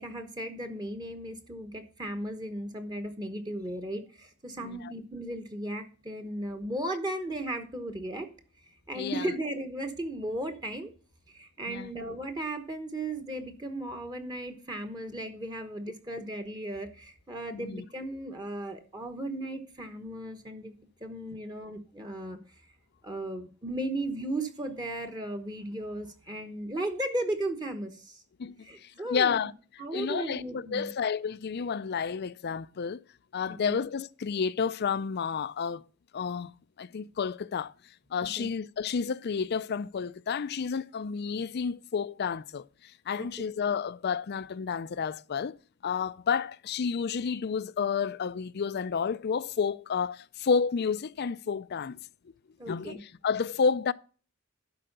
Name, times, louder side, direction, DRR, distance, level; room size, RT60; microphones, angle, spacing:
voice 1, 0.0-8.3 8.9-10.9 11.3-22.4 23.0-28.2 28.6-29.4 29.8-30.9 33.5-33.8 38.2-38.5 43.2-43.3 52.6-53.0, right 1 dB, 20° right, 1.1 m, -36 dB
voice 2, 4.6-4.9 8.9-9.3 11.7-11.9 17.5-17.8 28.4-29.5 29.9-33.0 33.3-35.8 36.1-36.5 36.8-37.7 38.1-45.6 45.8-52.0 52.7-53.9, left 6 dB, 50° left, 0.4 m, -30 dB
12.0 x 4.9 x 6.6 m
head